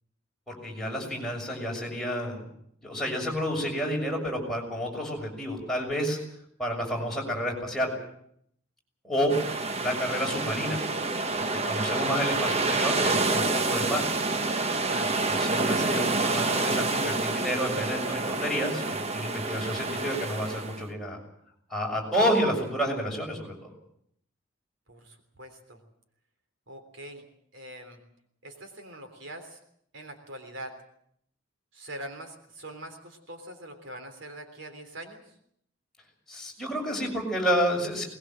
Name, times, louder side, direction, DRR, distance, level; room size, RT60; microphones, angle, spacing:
voice 1, 0.5-2.5 2.8-6.2 6.6-7.9 9.0-9.3 9.8-10.8 11.7-14.1 15.3-21.2 21.7-23.7 36.3-38.0, equal, ahead, -2 dB, 6.6 m, -30 dB
sound 1, 9.3-20.8, right 3 dB, 30° right, 1.0 m, -28 dB
voice 2, 9.3-9.7 14.8-15.2 24.9-25.8 26.7-27.2 27.5-28.0 28.4-29.6 29.9-30.7 31.7-35.3, right 1 dB, 60° right, 6 dB, 3.5 m, -43 dB
21.0 x 20.5 x 7.6 m, 0.70 s
head